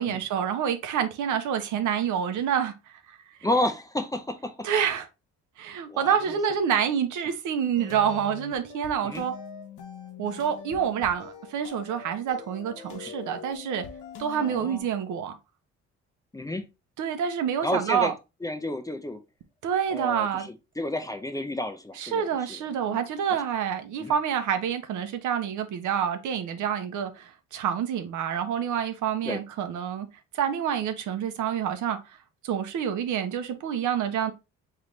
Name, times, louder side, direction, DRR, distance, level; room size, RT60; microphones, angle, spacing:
voice 1, 0.0-2.7 4.6-5.1 5.6-9.3 10.2-13.8 14.2-15.3 17.0-18.1 19.6-20.5 22.0-30.1 30.3-32.0 32.4-34.3, right 8 dB, 80° right, 0.8 m, -27 dB
voice 2, 3.4-4.7 5.9-6.2 9.0-9.2 14.4-14.9 16.3-16.6 17.6-18.1 18.4-19.2 19.9-22.6 22.9-23.0 24.0-24.1 29.2-29.4, left 1 dB, 10° left, 0.5 m, -31 dB
sound 1, 7.8-14.8, left 6 dB, 85° left, 0.9 m, -43 dB
3.8 x 3.3 x 3.1 m
cardioid pair, 90°, 30 cm